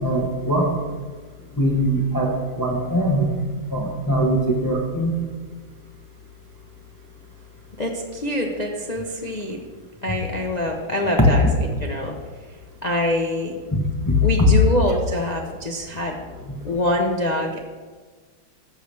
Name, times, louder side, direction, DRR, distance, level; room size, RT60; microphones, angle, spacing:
voice 1, 0.0-0.7 1.6-3.4 3.7-5.2 11.2-11.3 13.7-14.5 16.4-16.6, equal, 15° left, -1 dB, 1.0 m, -21 dB
voice 2, 7.8-9.6 10.0-11.4 11.8-12.1 12.8-13.5 14.2-16.1 16.6-17.6, left 1 dB, 55° left, 0 dB, 0.4 m, -25 dB
13.0 x 8.0 x 3.4 m, 1.4 s
omnidirectional pair, 2.2 m